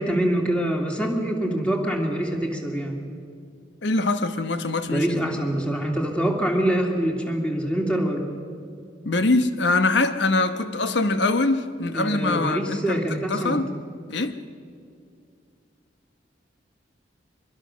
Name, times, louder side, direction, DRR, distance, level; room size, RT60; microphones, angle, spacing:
voice 1, 0.0-3.0 4.9-8.2 11.9-13.6, right 1 dB, 5° left, 1 dB, 2.4 m, -25 dB
voice 2, 3.8-5.4 9.0-13.7 14.1-14.4, left 2 dB, 70° left, 10 dB, 1.1 m, -23 dB
24.5 x 21.5 x 6.3 m, 2.3 s
head